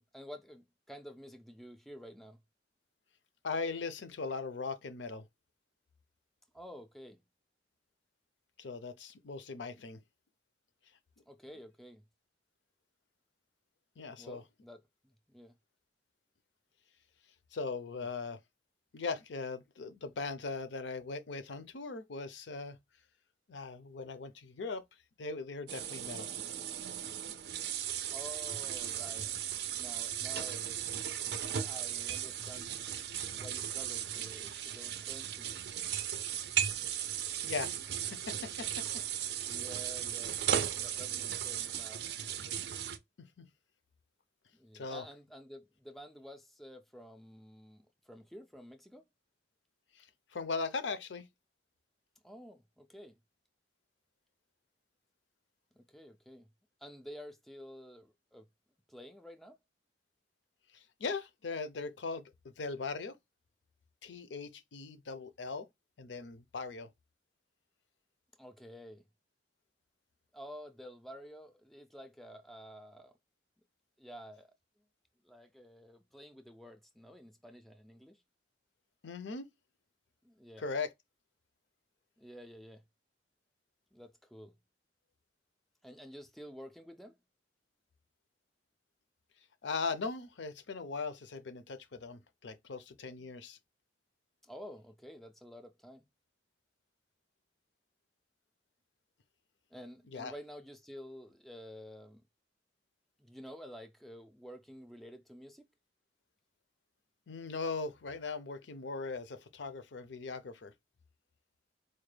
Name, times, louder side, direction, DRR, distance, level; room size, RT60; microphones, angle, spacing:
voice 1, 0.0-2.4 6.5-7.2 11.3-12.0 14.2-14.8 15.3-15.6 17.9-18.1 28.1-29.3 29.6-30.8 31.5-32.7 33.3-35.6 39.4-42.1 44.5-49.0 52.2-53.2 55.7-56.5 56.8-58.5 58.9-59.6 68.4-69.1 70.3-73.1 74.0-74.5 75.2-78.2 80.2-80.6 82.2-82.8 83.9-84.6 85.8-87.2 94.4-96.1 99.7-102.3 103.2-105.7, equal, ahead, 0.3 m, -50 dB
voice 2, 3.4-5.2 8.6-10.0 14.0-14.4 17.5-18.4 18.9-22.8 23.5-24.8 25.2-26.3 37.0-37.1 37.4-37.7 38.1-38.9 43.2-43.5 44.7-45.1 49.9-50.1 50.3-51.3 60.7-63.2 64.0-65.7 66.0-66.9 79.0-79.5 80.6-80.9 89.6-93.6 100.1-100.3 107.3-110.7, left 4 dB, 85° left, 0.6 m, -39 dB
sound 1, 25.7-43.0, right 10 dB, 65° right, 0.4 m, -36 dB
4.4 x 2.1 x 3.2 m
head